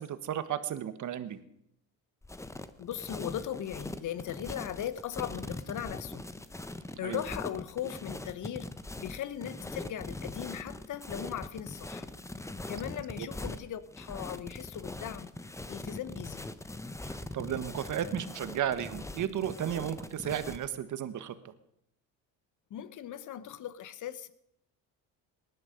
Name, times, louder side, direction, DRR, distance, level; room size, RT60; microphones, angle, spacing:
voice 1, 0.0-1.4 7.0-7.2 13.2-13.3 17.0-21.4, right 10 dB, 55° right, 1.4 m, -34 dB
sound 1, 2.2-20.7, left 2 dB, 10° left, 0.9 m, -41 dB
voice 2, 2.8-6.3 7.0-8.7 9.0-12.1 12.7-15.3 15.7-16.5 22.7-24.3, left 10 dB, 55° left, 1.1 m, -38 dB
19.0 x 11.0 x 5.2 m
supercardioid pair, 85°, 37 cm